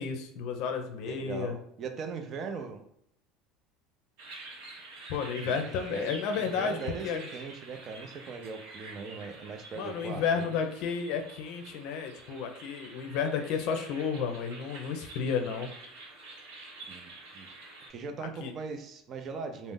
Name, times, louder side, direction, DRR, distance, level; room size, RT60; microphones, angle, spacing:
voice 1, 0.0-1.6 5.1-6.8 7.0-7.3 9.8-15.7 18.2-18.5, left 6 dB, 65° left, 6 dB, 0.5 m, -32 dB
voice 2, 1.0-2.8 5.4-5.6 5.9-10.6 16.9-17.5 17.9-19.7, right 5 dB, 45° right, 6 dB, 0.5 m, -40 dB
sound 1, 4.2-17.9, right 2 dB, 80° right, 0.9 m, -48 dB
2.5 x 2.0 x 3.6 m, 0.69 s
supercardioid pair, 95°, 0 cm